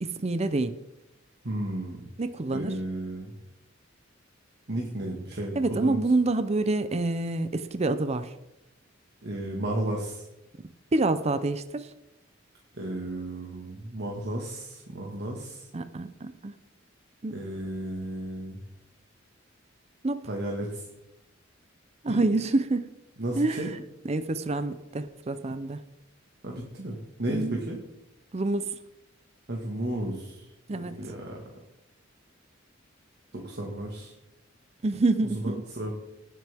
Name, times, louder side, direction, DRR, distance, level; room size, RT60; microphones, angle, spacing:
voice 1, 0.0-0.7 2.2-2.8 5.5-8.3 10.9-11.9 15.7-16.5 17.2-17.4 20.0-20.2 22.0-22.9 23.3-25.8 27.3-27.6 28.3-28.8 30.7-31.1 34.8-35.6, right 2 dB, 35° right, 11 dB, 0.6 m, -27 dB
voice 2, 1.4-2.0 2.5-3.4 4.7-6.0 9.2-10.2 12.7-15.7 17.3-18.6 20.3-20.8 22.1-22.2 23.2-23.7 26.4-27.8 29.5-31.5 33.3-34.1 35.3-35.9, right 1 dB, 55° right, -1 dB, 1.7 m, -33 dB
18.0 x 7.5 x 3.5 m, 0.89 s
head